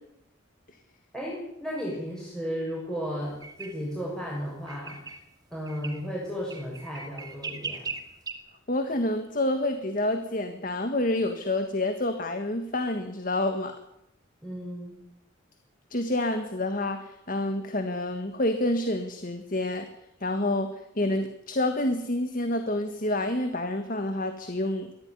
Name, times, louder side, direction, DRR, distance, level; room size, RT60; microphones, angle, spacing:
voice 1, 1.1-5.0 5.5-7.9 14.4-15.0, equal, 5° left, -5 dB, 6.5 m, -34 dB
sound 1, 3.4-3.7 4.7-5.2 5.7-6.0 6.5-8.3, right 4 dB, 20° right, 2.5 m, -38 dB
voice 2, 8.7-13.8 15.9-19.9 20.2-20.7 21.0-24.9, left 1 dB, 40° left, 7 dB, 1.8 m, -28 dB
23.5 x 15.5 x 9.7 m, 0.81 s
head